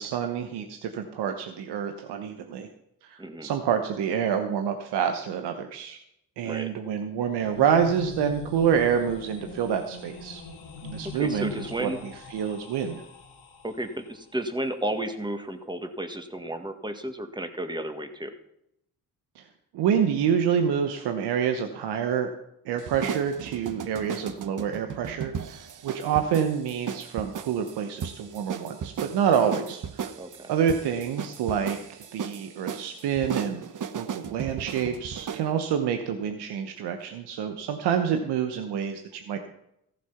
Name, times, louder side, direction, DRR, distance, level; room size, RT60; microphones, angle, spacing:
voice 1, 0.0-2.7 3.0-6.0 6.4-10.4 10.8-13.0 19.4-19.5 19.7-22.3 22.6-30.1 30.5-33.7 33.9-39.4, right 8 dB, 80° right, 6 dB, 1.0 m, -27 dB
voice 2, 3.2-3.5 6.4-6.7 11.2-12.0 13.6-18.3 30.2-30.5, right 1 dB, 10° right, 6 dB, 1.8 m, -33 dB
sound 1, 7.1-14.1, left 4 dB, 80° left, 2.2 m, -41 dB
sound 2, 22.8-35.5, right 7 dB, 50° right, 0.9 m, -36 dB
14.5 x 7.6 x 5.8 m, 0.79 s
supercardioid pair, 50°, 40 cm